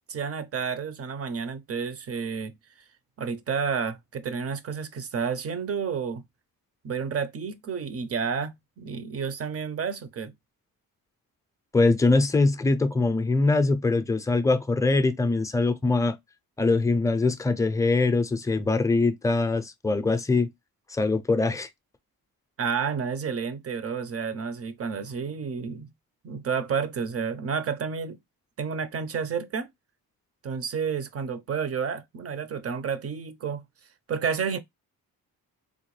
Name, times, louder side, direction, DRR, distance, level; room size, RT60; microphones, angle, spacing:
voice 1, 0.1-2.6 3.2-6.2 6.8-10.3 22.6-25.9 26.2-28.2 28.6-29.7 30.4-33.6 34.1-34.6, right 6 dB, 40° right, 0.5 m, -30 dB
voice 2, 11.7-16.2 16.6-20.5 20.9-21.7, left 3 dB, 10° left, 0.4 m, -23 dB
3.6 x 2.2 x 3.0 m
cardioid pair, 125°, 37 cm